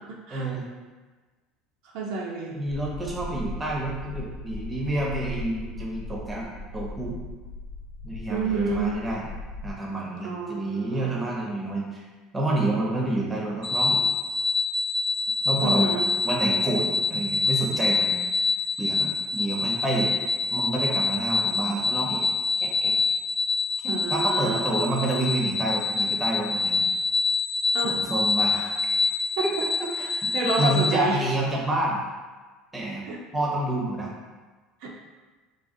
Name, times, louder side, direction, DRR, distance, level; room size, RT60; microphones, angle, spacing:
voice 1, 0.3-0.6 2.6-7.2 8.0-9.2 9.6-12.0 12.3-14.0 15.4-15.9 16.2-18.2 18.8-20.1 20.5-22.3 22.6-22.9 23.8-26.8 27.8-28.6 29.4-29.9 30.2-32.0 32.7-33.1 33.3-34.1, right 2 dB, 10° right, -2 dB, 0.6 m, -28 dB
voice 2, 1.9-2.6 8.3-8.9 10.2-11.2 15.6-16.1 23.9-24.6 27.7-27.9 28.5-28.7 29.4-29.5 30.0-30.1 30.3-31.2 33.1-33.2 34.8-35.0, right 3 dB, 70° right, -3 dB, 0.5 m, -28 dB
sound 1, 2.7-9.7, left 2 dB, 80° left, 0.6 m, -38 dB
sound 2, 13.6-30.9, left 3 dB, 40° left, 0.3 m, -26 dB
3.7 x 2.7 x 2.6 m, 1.3 s
cardioid pair, 160°, 0 cm